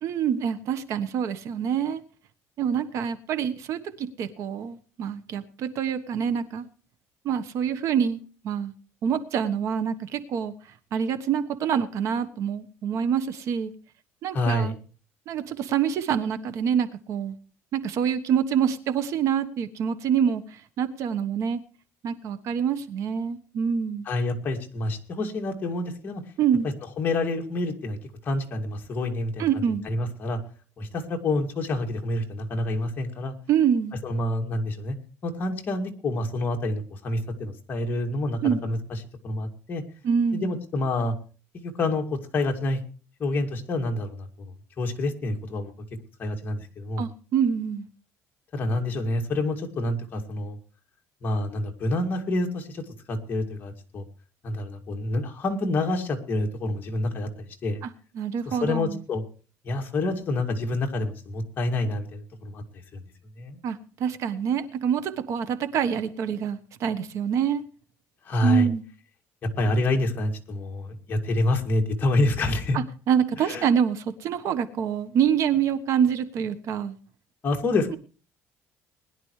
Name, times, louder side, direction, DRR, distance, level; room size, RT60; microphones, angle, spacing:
voice 1, 0.0-2.0 2.6-6.6 7.2-8.7 9.0-10.5 10.9-13.7 14.2-14.7 15.3-17.4 17.7-21.6 22.0-24.1 26.4-26.7 29.4-29.8 33.5-33.9 38.4-38.6 40.0-40.5 47.0-47.9 57.8-57.9 58.1-59.0 63.6-67.6 68.4-68.8 72.7-76.9, right 8 dB, 60° right, 11 dB, 1.2 m, -26 dB
voice 2, 14.3-14.8 24.1-26.2 27.0-28.0 28.2-30.4 30.8-33.3 34.0-34.9 35.2-39.0 39.2-39.8 40.3-41.2 41.5-42.8 43.2-45.7 46.2-47.0 48.5-50.6 51.2-52.8 53.1-54.1 54.4-57.8 58.5-59.2 59.6-63.0 63.4-63.6 68.2-68.7 69.4-72.8 73.4-73.7 77.4-78.0, left 2 dB, 35° left, 2 dB, 2.4 m, -28 dB
20.5 x 11.0 x 3.2 m, 0.37 s
cardioid pair, 145°, 6 cm